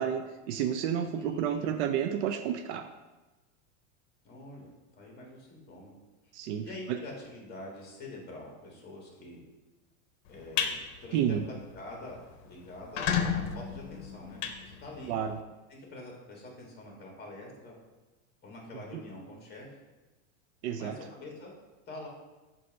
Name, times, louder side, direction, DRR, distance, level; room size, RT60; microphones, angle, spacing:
voice 1, 0.0-2.9 6.3-7.0 11.1-11.4 15.1-15.4 18.9-19.0 20.6-21.0, right 9 dB, 55° right, 8 dB, 0.5 m, -31 dB
voice 2, 1.1-1.8 4.2-4.7 5.0-5.9 6.6-9.4 10.3-12.2 12.4-15.1 15.7-17.7 18.4-19.8 20.8-21.5 21.9-22.1, left 1 dB, 25° left, -1 dB, 1.7 m, -45 dB
sound 1, 10.3-10.7 11.2-11.4 11.8-11.9 12.1-12.2 12.7-15.3, left 7 dB, 65° left, 0.8 m, -31 dB
6.7 x 2.8 x 5.1 m, 1.1 s
supercardioid pair, 135°, 40 cm